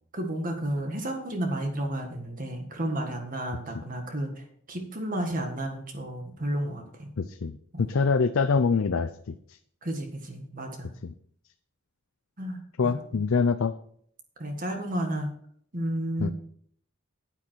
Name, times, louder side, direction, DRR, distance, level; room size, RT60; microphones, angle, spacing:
voice 1, 0.1-7.1 7.7-8.1 9.8-10.9 12.4-13.2 14.4-15.3 15.7-16.3, right 1 dB, 40° right, 3 dB, 1.6 m, -32 dB
voice 2, 7.2-9.3 12.8-13.7 16.2-16.3, left 5 dB, 70° left, 10 dB, 0.5 m, -25 dB
9.8 x 9.1 x 4.5 m, 0.62 s
head